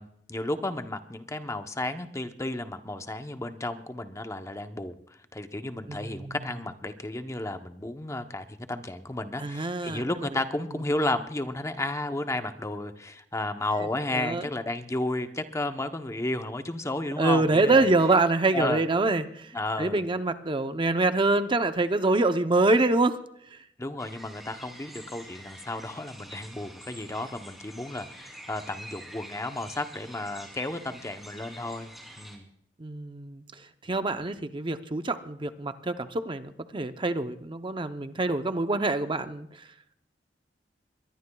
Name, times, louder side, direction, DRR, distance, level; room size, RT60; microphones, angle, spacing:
voice 1, 0.0-4.9 5.3-17.9 18.5-18.8 19.5-20.0 23.8-31.9 32.2-32.5, left 2 dB, 15° left, 8 dB, 0.8 m, -33 dB
voice 2, 5.9-6.3 9.4-10.0 14.1-14.4 17.2-19.5 19.8-23.2 32.8-33.4 33.9-39.5, right 2 dB, 30° right, 9 dB, 0.7 m, -25 dB
sound 1, 24.0-32.4, right 1 dB, ahead, 3.0 m, -47 dB
22.5 x 21.0 x 2.3 m, 0.72 s
head